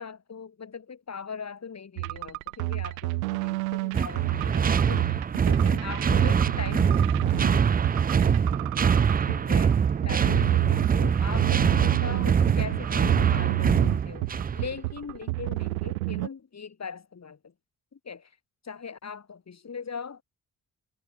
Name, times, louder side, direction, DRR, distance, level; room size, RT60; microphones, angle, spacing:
voice 1, 0.0-7.5 9.3-9.8 10.0-17.5 17.9-18.4 18.6-20.2, left 6 dB, 40° left, 7.3 m, -40 dB
sound 1, 2.0-16.3, right 22 dB, 75° right, 0.7 m, -30 dB
sound 2, 3.9-14.7, right 7 dB, 20° right, 0.6 m, -24 dB
figure-of-eight pair, 40°, 42 cm